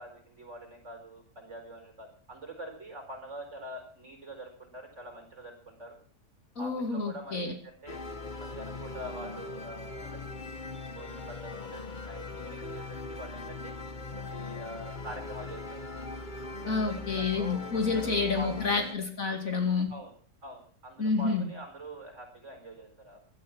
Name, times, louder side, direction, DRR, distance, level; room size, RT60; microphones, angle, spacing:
voice 1, 0.0-6.0 6.6-8.0 8.4-10.2 10.9-13.7 14.2-15.8 16.6-18.8 19.9-20.1 20.4-23.2, right 1 dB, 45° right, 4 dB, 4.9 m, -45 dB
voice 2, 6.6-7.5 16.7-19.9 21.0-21.5, left 4 dB, 50° left, 4 dB, 2.9 m, -29 dB
sound 1, 7.9-19.0, left 3 dB, 30° left, 1.2 m, -40 dB
16.5 x 12.0 x 6.1 m, 0.43 s
omnidirectional pair, 1.8 m